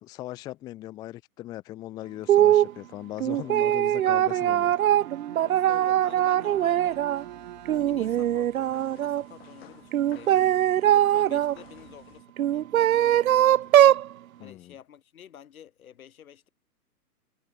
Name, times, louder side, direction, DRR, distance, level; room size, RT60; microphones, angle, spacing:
voice 1, 0.0-4.7 14.4-14.7, left 15 dB, 10° left, 0.9 m, -39 dB
sound 1, 2.3-2.7 3.2-7.2 7.7-9.2 9.9-11.6 12.4-14.1, right 12 dB, 60° right, 0.7 m, -21 dB
voice 2, 3.4-4.2 5.3-7.1 7.7-10.6 10.9-13.8 14.4-16.5, left 9 dB, 60° left, 3.5 m, -49 dB
Bowed string instrument, 3.9-8.2, right 15 dB, 30° right, 1.3 m, -44 dB
sound 2, 6.5-12.2, left 14 dB, 40° left, 6.7 m, -56 dB
hypercardioid pair, 165°, 48 cm